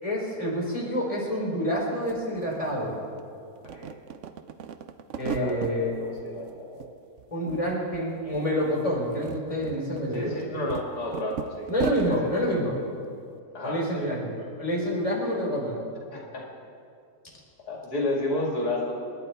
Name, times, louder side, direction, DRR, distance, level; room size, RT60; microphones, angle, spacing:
voice 1, 0.0-3.0 5.2-5.9 7.3-10.4 11.7-12.8 13.6-15.8, equal, 20° left, -3 dB, 3.7 m, -28 dB
sound 1, 1.8-1.9 2.1-3.2 3.6-5.8 6.2-6.9 7.2-8.0 8.3-8.5 8.9-12.2, right 7 dB, 60° right, 0.9 m, -36 dB
voice 2, 5.2-6.9 10.1-12.4 13.5-14.1 16.1-16.4 17.7-18.9, left 1 dB, 80° left, -2 dB, 2.9 m, -31 dB
28.0 x 11.0 x 4.6 m, 2.4 s
omnidirectional pair, 1.6 m